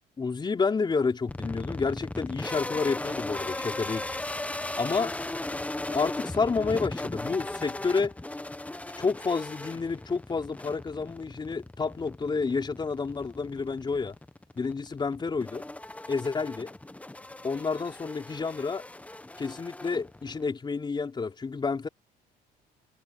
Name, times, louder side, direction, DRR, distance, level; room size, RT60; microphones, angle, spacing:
voice 1, 0.2-4.0 4.8-5.1 5.8-8.1 9.0-14.1 14.6-15.6 16.1-16.7 17.4-18.8 19.4-21.9, left 4 dB, 25° left, 4.6 m, -29 dB
sound 1, 1.3-20.5, left 2 dB, 10° left, 1.0 m, -37 dB
cardioid pair, 110°, 17 cm